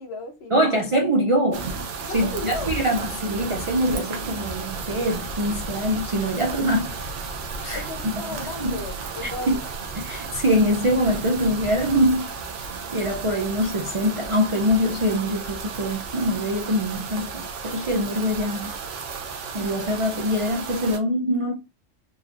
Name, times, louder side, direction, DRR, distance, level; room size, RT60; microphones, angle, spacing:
voice 1, 0.0-0.7 2.1-2.7 7.7-9.6, left 2 dB, 60° left, 0.9 m, -34 dB
voice 2, 0.5-1.7 2.1-6.9 7.6-7.8 8.2-8.3 8.6-8.8 9.5-9.6 10.0-12.3 12.9-18.8 19.5-21.5, equal, 50° right, 0.3 m, -23 dB
sound 1, 1.5-21.0, right 4 dB, 70° right, 1.0 m, -34 dB
sound 2, 4.5-12.2, right 2 dB, 25° right, 1.8 m, -40 dB
4.0 x 2.9 x 2.4 m
omnidirectional pair, 1.3 m